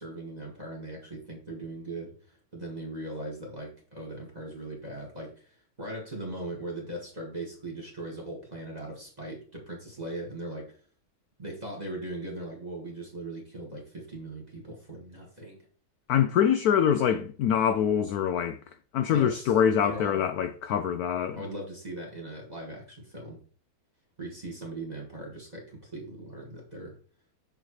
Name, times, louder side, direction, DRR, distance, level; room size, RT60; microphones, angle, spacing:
voice 1, 0.0-10.8 11.4-15.6 19.1-19.5 19.8-20.3 21.3-23.4 24.2-26.9, right 1 dB, 20° right, 1.9 m, -39 dB
voice 2, 16.1-18.6 18.9-21.4, left 8 dB, 75° left, 0.8 m, -24 dB
6.7 x 6.4 x 3.2 m
omnidirectional pair, 2.1 m